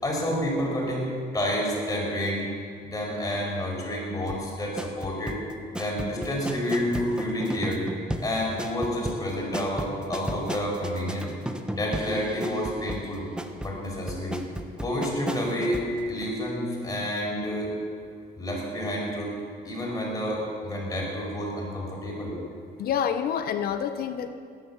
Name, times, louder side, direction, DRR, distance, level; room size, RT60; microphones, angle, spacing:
voice 1, 0.0-2.5 2.8-5.4 5.7-7.8 8.2-11.3 11.7-13.2 13.6-14.4 14.8-17.7 18.3-19.3 19.6-22.3, equal, 20° left, -2 dB, 5.4 m, -29 dB
sound 1, 4.3-15.9 16.2-16.3, right 1 dB, 5° right, 1.1 m, -34 dB
voice 2, 22.8-24.3, left 8 dB, 65° left, 9 dB, 1.0 m, -28 dB
18.0 x 10.5 x 7.4 m, 2.3 s
cardioid pair, 110°, 17 cm